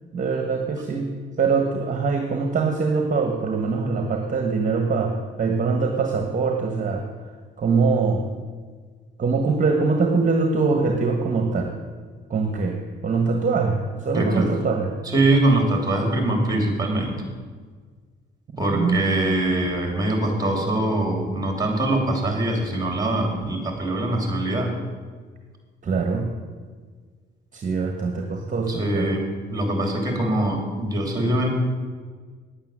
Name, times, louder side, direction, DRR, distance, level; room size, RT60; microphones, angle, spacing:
voice 1, 0.1-1.1 1.4-7.1 7.6-8.3 9.2-11.7 12.3-12.8 13.0-15.0 18.7-19.0 25.8-26.3 27.5-29.2, right 4 dB, 40° right, 4 dB, 1.4 m, -23 dB
voice 2, 14.1-14.5 15.0-17.2 18.6-24.7 28.7-31.5, right 1 dB, 20° right, 3 dB, 3.4 m, -23 dB
10.0 x 8.7 x 7.5 m, 1.5 s
cardioid pair, 90°, 20 cm